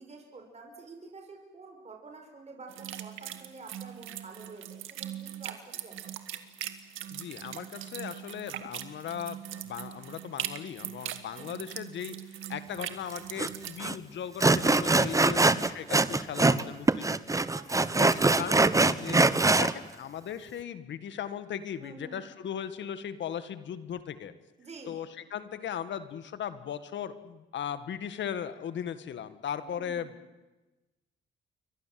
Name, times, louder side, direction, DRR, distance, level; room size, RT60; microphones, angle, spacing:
voice 1, 0.0-6.0 11.3-11.5 17.5-18.1 21.8-22.2 24.6-25.0 29.6-30.1, right 3 dB, 35° right, 3 dB, 5.8 m, -48 dB
sound 1, 2.7-13.8, right 11 dB, 85° right, 2.0 m, -41 dB
voice 2, 7.1-17.4 18.0-24.3 24.9-30.1, left 8 dB, 65° left, 12 dB, 1.9 m, -38 dB
Sawing, 13.4-13.5 13.8-14.0 14.4-16.6 16.9-19.7, right 3 dB, 15° right, 1.1 m, -23 dB
28.5 x 24.0 x 7.8 m, 1.1 s
cardioid pair, 90°, 20 cm